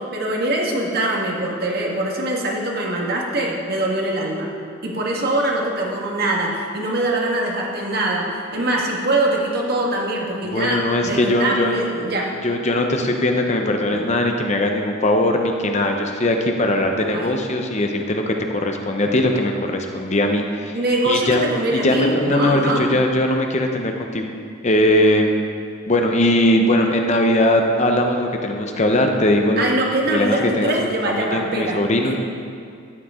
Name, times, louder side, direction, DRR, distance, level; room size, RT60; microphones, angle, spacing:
voice 1, 0.1-4.5 4.8-12.3 13.9-14.0 17.1-17.3 20.7-22.9 29.6-31.8 32.0-32.2, right 1 dB, 50° right, -1 dB, 1.7 m, -23 dB
voice 2, 10.4-11.8 12.4-20.8 21.0-21.4 21.7-24.2 24.6-25.3 25.9-29.7 30.1-32.2, left 1 dB, 35° left, 3 dB, 0.8 m, -20 dB
13.0 x 10.0 x 3.7 m, 2.3 s
head